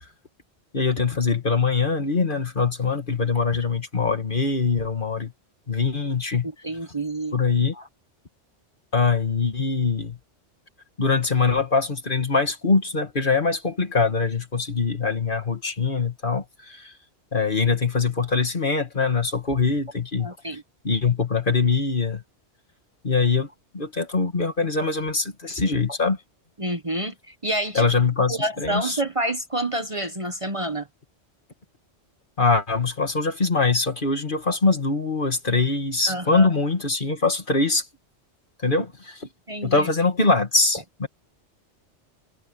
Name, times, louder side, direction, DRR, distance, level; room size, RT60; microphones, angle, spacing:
voice 1, 0.7-5.3 5.7-6.5 7.3-7.7 8.9-10.2 11.0-16.9 17.3-20.6 20.8-22.2 23.0-23.5 23.7-26.2 27.7-29.0 32.4-37.9 38.6-39.3 39.6-41.1, left 4 dB, 45° left, 2.4 m, -23 dB
voice 2, 6.6-7.3 7.7-7.8 20.2-20.6 26.6-27.9 28.3-30.9 36.1-36.5 39.5-39.9, right 1 dB, 25° right, 1.4 m, -28 dB
omnidirectional pair, 1.2 m